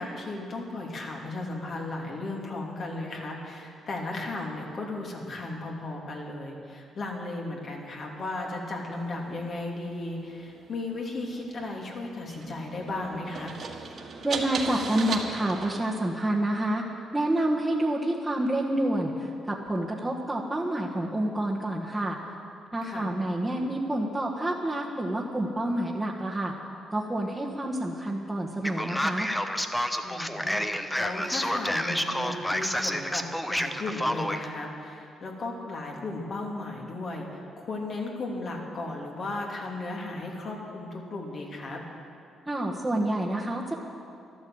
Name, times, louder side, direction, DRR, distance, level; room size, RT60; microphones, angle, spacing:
voice 1, 0.0-13.5 22.8-23.1 30.0-41.8, left 2 dB, 50° left, -1 dB, 2.9 m, -35 dB
sound 1, 9.0-15.7, right 4 dB, 55° right, 1.9 m, -38 dB
voice 2, 14.2-16.8 17.1-22.2 22.7-26.5 26.9-29.3 42.5-43.7, right 1 dB, 10° right, -6 dB, 1.5 m, -28 dB
Male speech man speaking, 28.6-34.4, equal, 5° left, 0.9 m, -29 dB
12.5 x 12.0 x 7.9 m, 2.5 s
cardioid pair, 90°, 0 cm